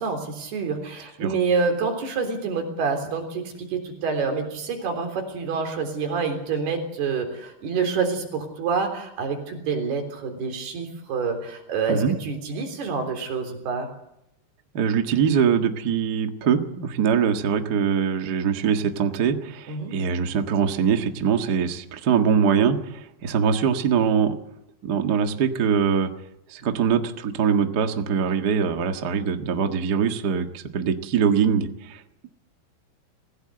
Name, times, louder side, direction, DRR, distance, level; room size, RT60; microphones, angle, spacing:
voice 1, 0.0-13.9 19.7-20.0, right 5 dB, 90° right, 4 dB, 5.6 m, -27 dB
voice 2, 14.7-24.3 24.8-26.1 26.5-32.3, right 7 dB, 45° right, 5 dB, 1.2 m, -23 dB
26.0 x 16.0 x 7.9 m, 0.81 s
omnidirectional pair, 4.4 m